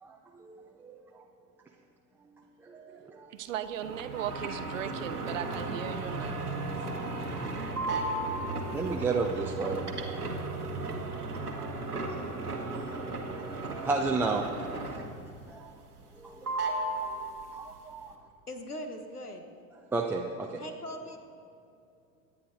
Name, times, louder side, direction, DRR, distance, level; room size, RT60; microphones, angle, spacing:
voice 1, 0.0-1.2 2.6-3.4 8.4-8.5 8.7-10.2 10.9-11.7 12.9-13.0 13.7-14.7 15.5-15.7 16.1-17.2 17.5-18.1 19.9-20.6, right 3 dB, 5° right, 0 dB, 0.4 m, -34 dB
voice 2, 3.3-6.5, right 10 dB, 60° right, 11 dB, 0.7 m, -37 dB
sound 1, 3.8-15.3 15.6-16.2 16.4-17.8, right 2 dB, 85° right, 1.5 m, -35 dB
voice 3, 18.5-19.4 20.6-21.2, equal, 90° left, 6 dB, 1.2 m, -40 dB
23.5 x 9.7 x 3.9 m, 2.6 s
figure-of-eight pair, 80°, 44 cm